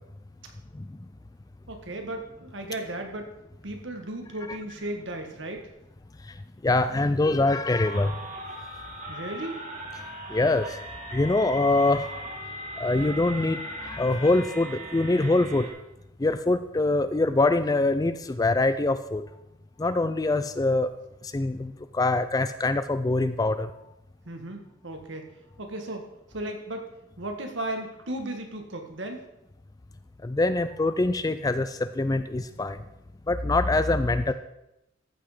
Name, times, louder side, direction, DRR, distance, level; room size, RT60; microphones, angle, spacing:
voice 1, 1.7-3.3 3.6-5.7 9.1-9.6 24.2-25.3 25.6-26.0 26.3-26.9 27.2-29.2, right 1 dB, 65° right, 4 dB, 1.6 m, -35 dB
voice 2, 6.6-8.2 10.3-10.7 11.1-12.1 12.8-15.7 16.2-19.2 19.8-20.9 21.3-23.7 30.2-32.8 33.3-34.3, left 2 dB, 20° left, 11 dB, 0.3 m, -24 dB
sound 1, 7.8-15.7, equal, 35° right, 1.9 m, -38 dB
14.0 x 5.9 x 4.9 m, 0.87 s
head